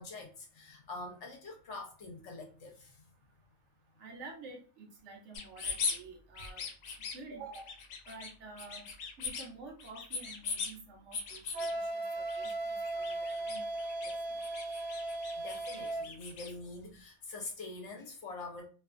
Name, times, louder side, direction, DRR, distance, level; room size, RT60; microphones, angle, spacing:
voice 1, 0.0-3.0 15.4-18.7, left 3 dB, 60° left, 0.9 m, -45 dB
voice 2, 4.0-6.6 7.1-7.8 8.1-8.9 9.2-13.7 14.0-14.4, right 3 dB, 65° right, 0.8 m, -50 dB
sound 1, 5.3-6.0 6.3-7.2 7.5-8.3 8.6-9.5 9.8-10.7 11.1-11.7 12.3-12.5 12.8-14.1 14.4-16.5, left 4 dB, 85° left, 1.0 m, -39 dB
Wind instrument woodwind instrument, 11.5-16.1, right 2 dB, 85° right, 1.1 m, -37 dB
2.5 x 2.3 x 2.4 m
omnidirectional pair, 1.5 m